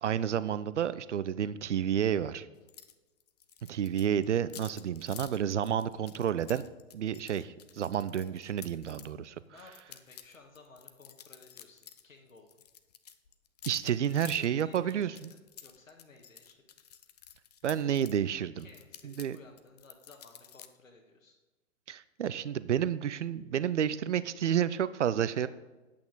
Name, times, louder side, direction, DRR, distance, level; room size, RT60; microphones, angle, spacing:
voice 1, 0.0-2.5 3.7-6.6 6.9-9.3 13.7-15.1 17.6-18.7 19.0-19.4 21.9-25.5, right 9 dB, 60° right, 16 dB, 0.6 m, -30 dB
sound 1, 2.7-2.9 3.2-9.1 9.6-12.0 12.3-18.2 18.6-20.7, left 9 dB, 30° left, 0.5 m, -51 dB
voice 2, 9.5-12.6 14.1-16.6 18.6-21.4 25.2-25.5, left 3 dB, 75° left, 4 dB, 1.5 m, -56 dB
10.0 x 8.6 x 3.9 m, 1.2 s
figure-of-eight pair, 115°, 41 cm